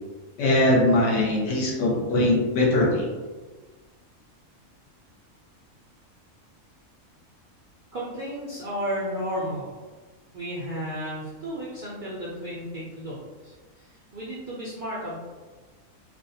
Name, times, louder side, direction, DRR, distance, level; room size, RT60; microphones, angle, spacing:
voice 1, 0.4-3.1, left 1 dB, 70° left, -2 dB, 0.9 m, -21 dB
voice 2, 7.9-9.8 10.3-13.2 13.4-15.2, equal, 65° right, -7 dB, 0.5 m, -33 dB
2.4 x 2.0 x 2.7 m, 1.3 s
omnidirectional pair, 1.4 m